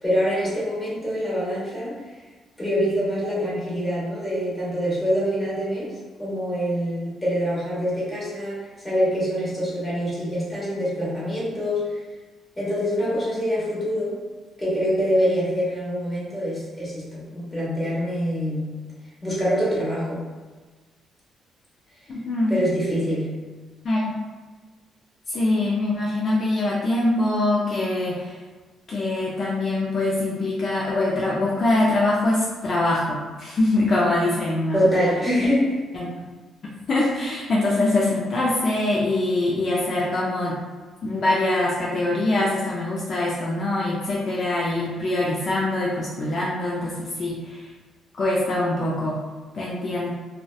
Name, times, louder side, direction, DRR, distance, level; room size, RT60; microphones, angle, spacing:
voice 1, 0.0-2.0 2.6-12.0 12.6-14.2 14.6-18.8 19.2-20.2 22.5-23.5 34.7-35.8, equal, 15° left, -7 dB, 1.0 m, -25 dB
voice 2, 22.1-22.5 23.8-24.2 25.3-28.4 28.9-34.8 35.9-36.1 36.9-40.6 41.0-47.7 48.2-49.2 49.5-50.1, left 2 dB, 50° left, -5 dB, 0.4 m, -23 dB
2.5 x 2.1 x 2.3 m, 1.4 s
cardioid pair, 90°, 0 cm